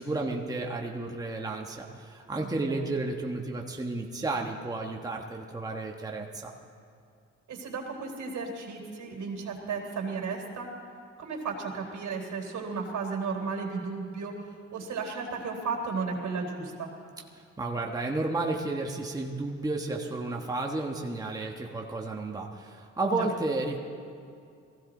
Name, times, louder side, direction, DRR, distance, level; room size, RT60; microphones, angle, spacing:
voice 1, 0.0-6.5 17.6-23.8, right 2 dB, 10° right, 0 dB, 1.3 m, -32 dB
voice 2, 2.3-3.0 7.5-10.7 11.2-16.9 23.1-23.3, right 4 dB, 70° right, 0 dB, 3.3 m, -34 dB
20.0 x 15.5 x 3.9 m, 2.5 s
cardioid pair, 90°, 30 cm